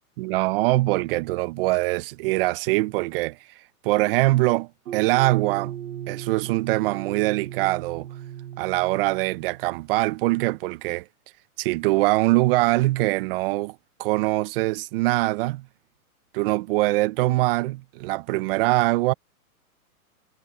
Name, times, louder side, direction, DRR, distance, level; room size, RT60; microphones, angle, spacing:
voice 1, 0.2-3.4 3.8-5.7 6.1-8.1 8.6-11.0 11.6-15.6 16.3-19.1, right 20 dB, 40° right, 0.9 m, -23 dB
sound 1, 4.9-10.1, right 11 dB, 65° right, 1.9 m, -38 dB
hypercardioid pair, 140°, 44 cm